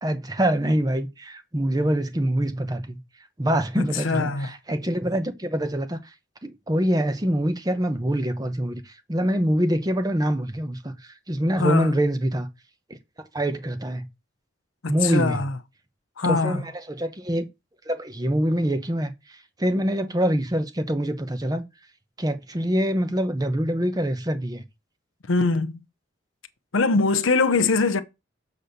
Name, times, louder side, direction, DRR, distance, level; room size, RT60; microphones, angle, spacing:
voice 1, 0.0-3.0 3.4-6.0 6.4-12.5 13.3-14.1 14.9-15.4 16.2-17.5 17.9-21.6 22.2-24.6, equal, 20° right, 0.8 m, -25 dB
voice 2, 3.8-4.5 11.6-11.9 14.8-15.5 16.2-16.6 25.3-25.7 26.7-28.0, left 3 dB, 80° left, 0.8 m, -22 dB
6.8 x 4.2 x 6.5 m
head